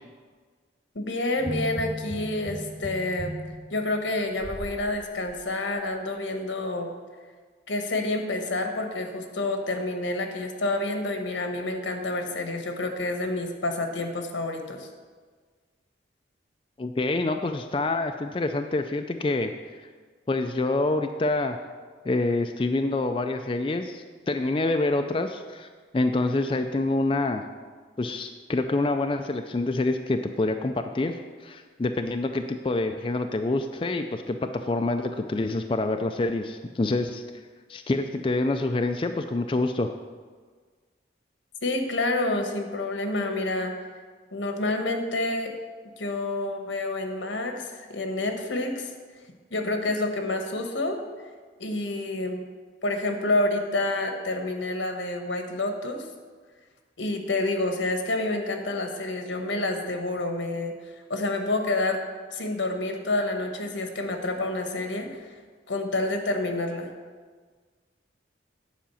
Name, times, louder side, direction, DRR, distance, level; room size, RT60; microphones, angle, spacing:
voice 1, 0.9-3.4 3.7-6.9 7.7-14.9 41.6-43.7 44.3-45.5 46.0-48.9 49.5-51.0 51.6-52.4 52.8-56.1 57.0-60.8 61.1-62.0 62.3-65.3 65.7-66.9, left 2 dB, 85° left, 5 dB, 1.3 m, -28 dB
sound 1, 1.4-4.8 5.3-5.4, equal, 15° right, 1.2 m, -36 dB
voice 2, 16.8-19.5 20.3-21.6 22.0-25.7 25.9-27.4 28.0-37.2 37.7-39.9, left 2 dB, 30° left, 6 dB, 0.4 m, -26 dB
10.0 x 5.1 x 7.0 m, 1.5 s
head